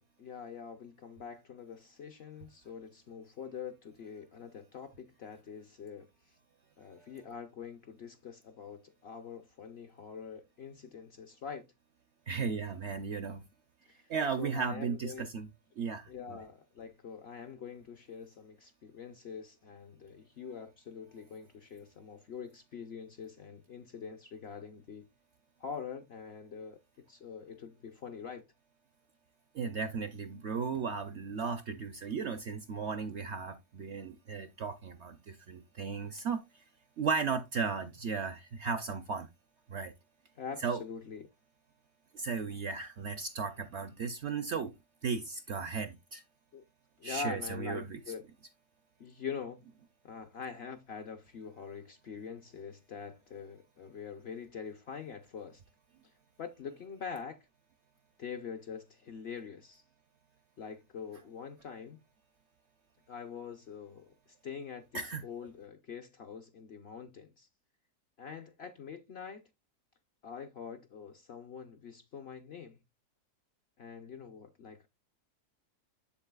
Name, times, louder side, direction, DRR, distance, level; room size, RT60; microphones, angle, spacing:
voice 1, 0.0-6.1 6.8-11.6 13.9-14.1 14.4-15.2 16.1-25.1 25.6-28.4 31.3-31.4 40.4-41.3 46.5-46.6 47.0-48.2 49.0-49.6 50.0-55.6 56.4-57.5 58.2-59.8 60.6-62.0 63.1-64.1 64.4-67.5 68.2-69.4 70.2-72.8 73.8-74.9, left 6 dB, 55° left, 0.7 m, -44 dB
voice 2, 12.3-13.4 14.1-15.5 15.8-16.4 29.5-36.6 37.0-39.3 39.7-39.9 40.6-40.8 42.1-44.7 45.0-46.2 47.0-48.0 64.9-65.2, right 5 dB, 60° right, 0.7 m, -35 dB
7.2 x 7.2 x 2.3 m
omnidirectional pair, 1.7 m